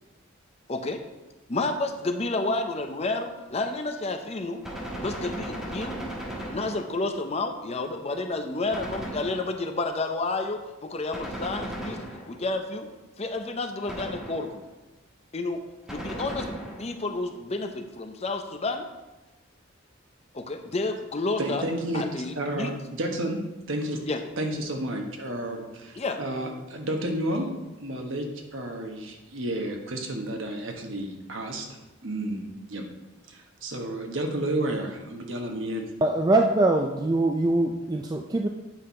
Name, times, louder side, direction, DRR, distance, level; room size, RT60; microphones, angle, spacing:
voice 1, 0.7-1.0 1.5-4.6 5.0-6.1 6.5-12.9 13.2-14.6 15.3-15.6 15.9-16.5 16.8-18.9 20.3-21.6 21.9-22.7 24.1-24.2 26.0-26.2, left 2 dB, 30° left, 6 dB, 0.6 m, -30 dB
Gunshot gunfire, 4.6-7.1 8.7-9.8 11.1-12.6 13.9-14.7 15.9-17.0, equal, ahead, 1.3 m, -36 dB
voice 2, 21.4-22.0 22.4-23.4 23.7-24.0 24.4-27.5 27.8-31.6 32.0-32.4 32.7-32.9 33.3-35.9, right 1 dB, 70° right, 2 dB, 1.2 m, -31 dB
voice 3, 36.0-38.5, right 2 dB, 20° right, 3 dB, 0.3 m, -23 dB
8.9 x 5.5 x 4.3 m, 1.1 s
head